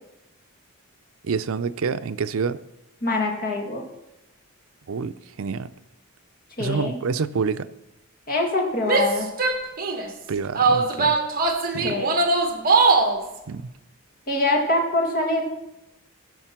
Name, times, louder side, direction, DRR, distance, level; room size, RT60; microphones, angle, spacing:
voice 1, 1.2-2.6 4.9-5.7 6.6-7.7 10.3-11.2 11.7-12.0 13.5-13.7, right 5 dB, 70° right, 0.5 m, -27 dB
voice 2, 3.0-3.8 6.6-7.0 8.3-9.3 11.8-12.1 14.3-15.5, left 2 dB, 40° left, 2.1 m, -24 dB
Female speech woman speaking / Yell, 8.8-10.1 10.6-13.2, right 3 dB, 40° right, 1.2 m, -21 dB
15.5 x 5.8 x 5.9 m
head